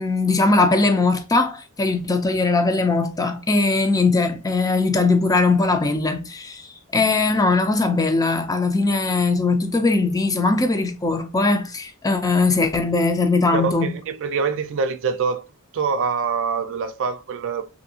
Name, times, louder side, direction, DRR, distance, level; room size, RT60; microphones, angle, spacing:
voice 1, 0.0-13.9, left 3 dB, 15° left, 0.5 m, -20 dB
voice 2, 13.5-15.4 15.7-17.7, right 5 dB, 60° right, 0.4 m, -24 dB
3.3 x 2.7 x 2.7 m
head